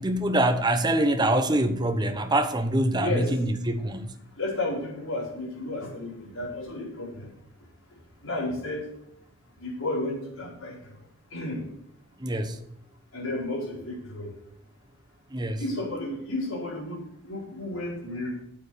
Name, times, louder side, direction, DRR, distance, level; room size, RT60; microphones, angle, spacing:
voice 1, 0.0-4.1 12.2-12.6 15.3-15.6, right 1 dB, 20° right, 8 dB, 0.9 m, -24 dB
voice 2, 3.0-3.3 4.4-7.3 8.2-8.9 9.6-10.8 11.3-11.7 13.1-14.3 15.6-18.4, left 2 dB, 70° left, -4 dB, 4.9 m, -32 dB
8.9 x 8.1 x 6.7 m, 0.74 s
head